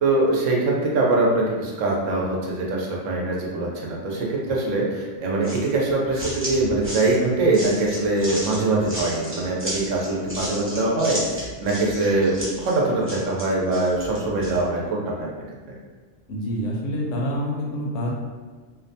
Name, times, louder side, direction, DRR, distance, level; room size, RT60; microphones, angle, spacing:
voice 1, 0.0-15.3, right 2 dB, 85° right, -2 dB, 0.9 m, -23 dB
sound 1, 5.4-14.6, equal, 15° right, 0.5 m, -34 dB
voice 2, 16.3-18.1, equal, 75° left, -2 dB, 0.9 m, -27 dB
2.6 x 2.1 x 2.6 m, 1.4 s
omnidirectional pair, 1.3 m